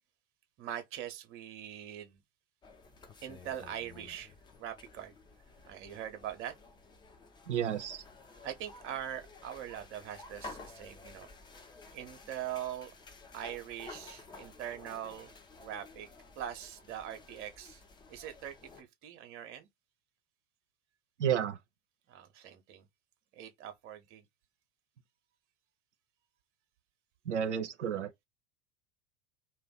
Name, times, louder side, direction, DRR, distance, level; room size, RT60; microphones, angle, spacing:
voice 1, 0.6-2.2 3.2-5.1 5.6-6.5 8.4-11.3 11.9-12.9 13.3-16.1 16.4-17.8 18.1-19.7 22.1-22.9 23.3-24.2, right 10 dB, 35° right, 0.8 m, -42 dB
sound 1, 2.6-18.8, left 3 dB, 15° left, 0.5 m, -53 dB
voice 2, 7.5-8.0 21.2-21.6 27.3-28.3, right 8 dB, 75° right, 0.5 m, -32 dB
2.4 x 2.3 x 3.6 m
figure-of-eight pair, 80°, 35 cm